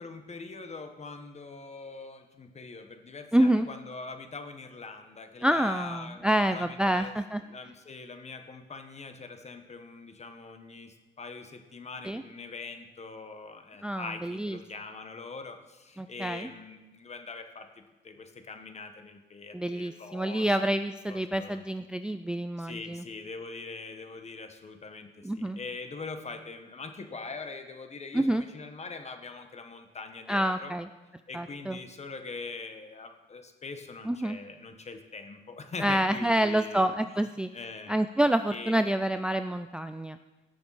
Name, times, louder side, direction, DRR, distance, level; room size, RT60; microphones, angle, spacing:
voice 1, 0.0-7.1 7.4-20.6 21.1-21.6 22.6-30.8 31.3-37.2 37.5-38.0 38.5-38.9, left 4 dB, 35° left, 6 dB, 1.3 m, -43 dB
voice 2, 3.3-3.7 5.4-7.4 12.0-12.2 13.8-14.6 16.0-16.5 19.5-23.0 25.2-25.6 28.1-28.4 30.3-30.9 31.3-31.8 34.1-34.4 35.8-37.5 37.9-40.2, right 1 dB, 5° right, 9 dB, 0.4 m, -27 dB
17.0 x 6.8 x 4.2 m, 1.1 s
cardioid pair, 90°, 20 cm